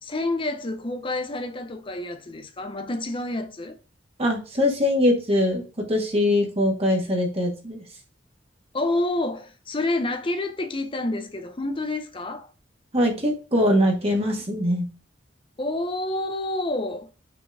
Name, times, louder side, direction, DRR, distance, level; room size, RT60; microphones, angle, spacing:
voice 1, 0.0-3.7 8.7-12.5 15.6-17.1, left 2 dB, 30° left, 0.7 m, -28 dB
voice 2, 4.2-5.6 5.9-7.8 12.9-14.9, left 1 dB, 35° right, 1.9 m, -22 dB
6.0 x 4.4 x 4.8 m
head